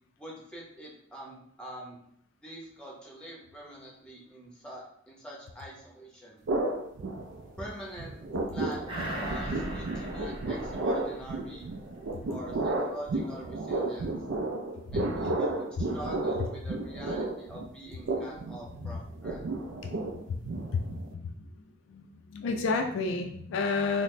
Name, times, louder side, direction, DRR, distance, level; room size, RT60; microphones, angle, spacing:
voice 1, 0.2-2.0 2.4-6.4 7.6-8.2 8.5-11.7 12.3-14.1 14.9-19.6, right 1 dB, 5° left, -4 dB, 0.7 m, -44 dB
sound 1, 6.5-7.7 8.0-21.1, right 2 dB, 65° right, 0.4 m, -33 dB
sound 2, 8.9-11.8 12.2-12.3, equal, 25° right, 0.8 m, -39 dB
voice 2, 20.2-21.5 21.9-24.0, left 4 dB, 65° left, 5 dB, 0.3 m, -31 dB
3.9 x 2.0 x 3.2 m, 0.69 s
head